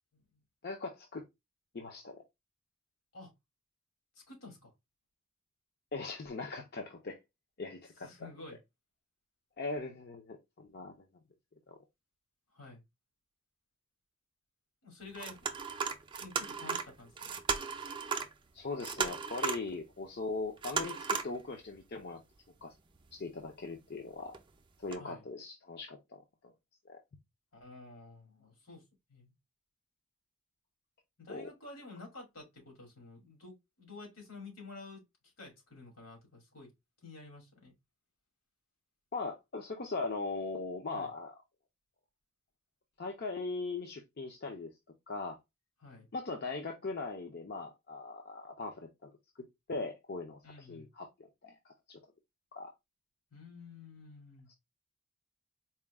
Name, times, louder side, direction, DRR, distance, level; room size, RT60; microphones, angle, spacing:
voice 1, 0.6-1.2 1.7-2.2 5.9-7.2 7.6-8.3 9.6-10.9 11.7-11.8 18.5-22.2 22.6-22.7 23.1-24.3 24.8-26.2 26.9-27.0 31.3-31.5 39.1-41.3 43.0-44.7 45.1-45.4 46.1-49.1 49.7-51.1 51.4-52.0 52.5-52.7, left 3 dB, 50° left, 0.6 m, -40 dB
voice 2, 4.3-4.7 8.0-8.6 12.5-12.8 14.8-15.4 16.2-17.4 25.0-25.2 27.5-28.8 29.1-29.3 31.2-35.0 35.4-36.7 37.0-37.7 40.9-41.1 45.8-46.1 50.4-50.9 53.3-54.5, left 3 dB, 80° left, 2.5 m, -50 dB
sound 1, 15.1-18.3 18.6-19.7 20.6-21.4 21.8-21.9 22.9-23.3 24.3-24.4 24.9-25.0, right 6 dB, 25° right, 0.4 m, -36 dB
4.3 x 2.2 x 3.4 m
head